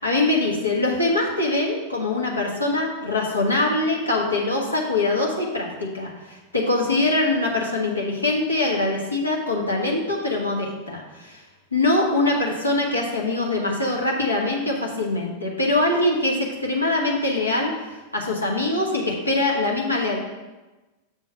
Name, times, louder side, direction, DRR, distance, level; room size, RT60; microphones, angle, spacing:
voice 1, 0.0-11.4 11.7-20.2, left 2 dB, 80° left, -2 dB, 1.1 m, -23 dB
6.6 x 3.8 x 6.4 m, 1.1 s
figure-of-eight pair, 90°, 0 cm